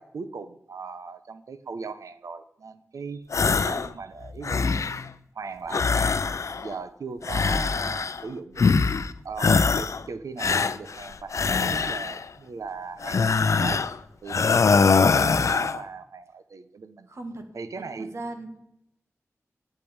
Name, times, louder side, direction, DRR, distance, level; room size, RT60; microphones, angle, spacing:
voice 1, 0.0-5.0 5.3-8.8 9.2-13.8 14.2-17.1 17.5-18.1, right 4 dB, 85° right, 12 dB, 0.8 m, -39 dB
sound 1, 3.3-3.9 4.2-5.1 5.7-6.7 7.2-8.2 8.6-9.1 9.4-10.0 10.4-12.2 13.0-14.0 14.3-15.8, left 5 dB, 70° left, 0.5 m, -23 dB
voice 2, 17.1-17.5 18.0-18.6, right 2 dB, 60° right, 5 dB, 1.8 m, -37 dB
8.7 x 8.3 x 8.7 m, 0.79 s
wide cardioid pair, 70°, 5 cm